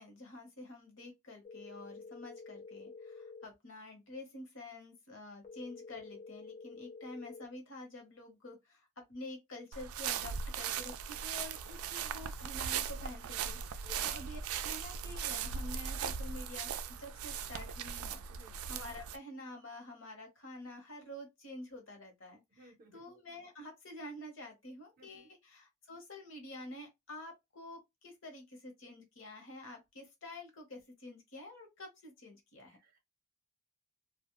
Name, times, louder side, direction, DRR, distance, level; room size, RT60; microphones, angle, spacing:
voice 1, 0.0-32.8, left 1 dB, 60° left, 1.0 m, -49 dB
sound 1, 1.4-3.5 5.4-7.5, left 4 dB, 40° left, 0.7 m, -49 dB
sound 2, 9.7-19.2, right 7 dB, 80° right, 0.3 m, -39 dB
voice 2, 18.3-18.6 22.5-23.0 25.0-25.3 32.8-33.0, right 2 dB, 40° right, 0.7 m, -57 dB
2.4 x 2.1 x 2.9 m
head